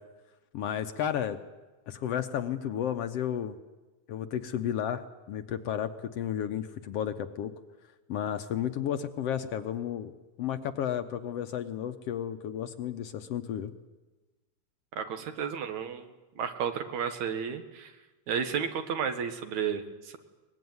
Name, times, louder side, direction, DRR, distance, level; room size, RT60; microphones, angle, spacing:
voice 1, 0.5-1.4 1.9-3.6 4.1-7.5 8.1-10.1 10.4-13.7, left 9 dB, 65° left, 8 dB, 1.8 m, -32 dB
voice 2, 14.9-16.1 16.4-17.9 18.3-20.2, right 7 dB, 75° right, 8 dB, 2.8 m, -32 dB
23.0 x 20.5 x 9.6 m, 1.2 s
omnidirectional pair, 3.4 m